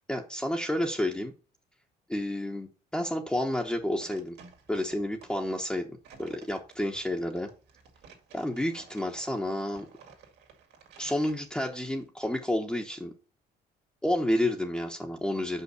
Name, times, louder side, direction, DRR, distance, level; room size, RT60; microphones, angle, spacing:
voice 1, 0.1-1.3 2.1-4.4 4.7-7.5 8.3-9.9 11.0-13.1 14.0-15.6, left 1 dB, 5° left, 1 dB, 1.0 m, -30 dB
sound 1, 3.8-12.1, right 5 dB, 80° right, 2.3 m, -54 dB
5.6 x 5.4 x 6.8 m, 0.35 s
cardioid pair, 110°, 17 cm